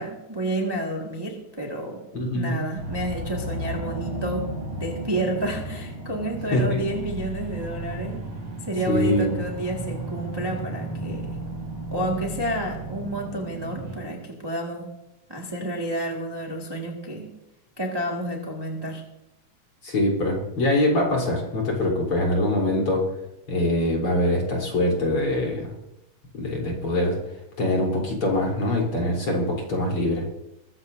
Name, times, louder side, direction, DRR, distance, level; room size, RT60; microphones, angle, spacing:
voice 1, 0.0-2.0 2.3-4.5 4.8-8.2 8.6-11.4 11.9-14.9 15.3-17.3 17.8-19.0, right 1 dB, 10° right, -1 dB, 1.3 m, -30 dB
voice 2, 2.1-2.6 6.5-6.8 8.9-9.3 19.8-23.0 23.5-25.7 26.3-27.2 27.6-30.2, left 1 dB, 40° left, -2 dB, 4.5 m, -23 dB
sound 1, 2.8-14.0, right 1 dB, 35° right, 5.3 m, -34 dB
22.0 x 15.0 x 2.7 m, 0.87 s
omnidirectional pair, 3.6 m